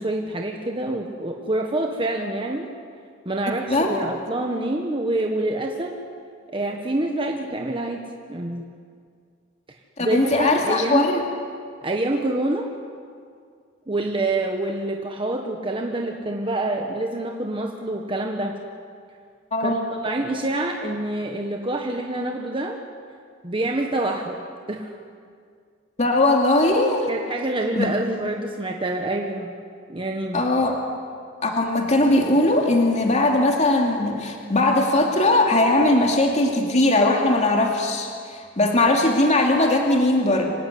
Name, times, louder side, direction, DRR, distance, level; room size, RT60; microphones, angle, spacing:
voice 1, 0.0-2.7 3.2-6.0 6.5-8.0 8.3-8.6 10.0-11.1 11.8-12.7 13.9-18.6 19.6-22.8 23.4-24.4 24.7-24.9 27.1-29.5 29.9-30.4, right 2 dB, 25° right, 1 dB, 1.5 m, -26 dB
voice 2, 10.0-11.2 19.5-19.8 26.0-27.1 27.8-27.9 30.3-30.8 31.4-40.5, left 2 dB, 35° left, 1 dB, 2.6 m, -19 dB
26.0 x 16.0 x 9.5 m, 2.2 s
head